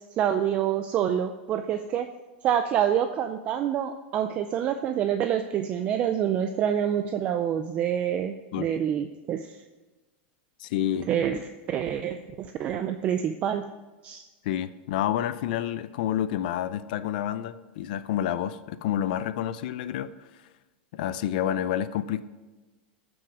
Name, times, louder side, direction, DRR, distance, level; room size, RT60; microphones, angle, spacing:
voice 1, 0.1-2.1 2.4-9.6 11.0-13.7 14.0-14.2, right 9 dB, 20° right, 8 dB, 0.4 m, -27 dB
voice 2, 10.6-11.1 14.4-20.1 20.9-22.2, left 11 dB, 50° left, 14 dB, 0.5 m, -29 dB
15.0 x 6.2 x 6.0 m, 1.2 s
supercardioid pair, 175°, 6 cm